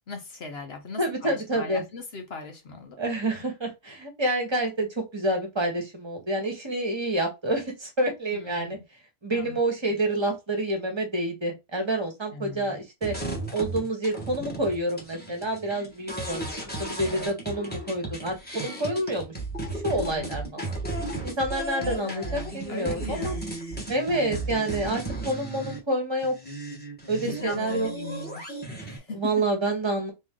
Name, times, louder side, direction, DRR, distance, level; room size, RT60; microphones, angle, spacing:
voice 1, 0.1-3.0 8.3-8.8 9.3-9.6 12.3-12.8 20.0-20.6 21.8-23.5 24.1-24.7 27.1-29.4, left 4 dB, 50° left, 0.9 m, -39 dB
voice 2, 1.0-1.8 3.0-8.8 9.2-13.1 13.5-16.5 16.8-19.3 19.7-20.8 21.2-23.4 23.9-26.3 27.1-27.9 29.1-30.1, right 1 dB, 20° right, 1.0 m, -28 dB
sound 1, 13.0-25.8 26.2-29.0, right 2 dB, 5° left, 1.1 m, -35 dB
3.5 x 3.1 x 3.6 m
omnidirectional pair, 1.6 m